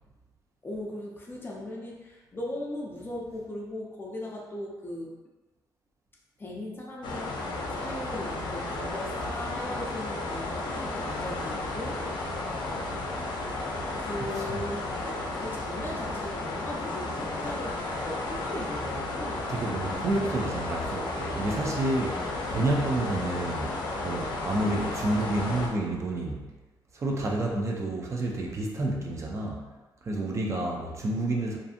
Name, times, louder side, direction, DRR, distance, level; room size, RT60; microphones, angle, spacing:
voice 1, 0.6-5.2 6.4-12.0 14.0-19.5, left 1 dB, 30° left, -3 dB, 0.6 m, -38 dB
sound 1, 7.0-25.7, left 2 dB, 75° left, 0.5 m, -33 dB
voice 2, 14.2-14.6 19.5-23.7 24.0-26.4 26.9-29.6 30.0-31.6, right 2 dB, 40° right, -1 dB, 0.4 m, -29 dB
2.6 x 2.5 x 2.4 m, 1.2 s
cardioid pair, 100°, 8 cm